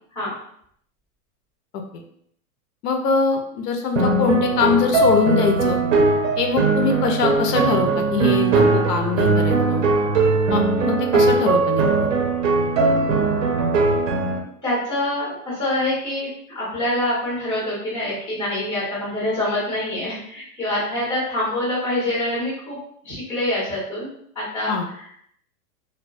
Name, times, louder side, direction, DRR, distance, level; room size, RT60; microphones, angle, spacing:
voice 1, 2.8-5.8 6.4-9.9 10.5-12.1 24.7-24.8, left 5 dB, 80° left, 4 dB, 0.6 m, -22 dB
sound 1, 4.0-14.4, right 3 dB, 55° right, 0.5 m, -19 dB
voice 2, 14.6-16.3 16.5-22.8 23.0-24.1 24.3-25.2, left 1 dB, 10° left, -10 dB, 0.5 m, -25 dB
2.2 x 2.1 x 2.5 m, 0.68 s
supercardioid pair, 180°, 46 cm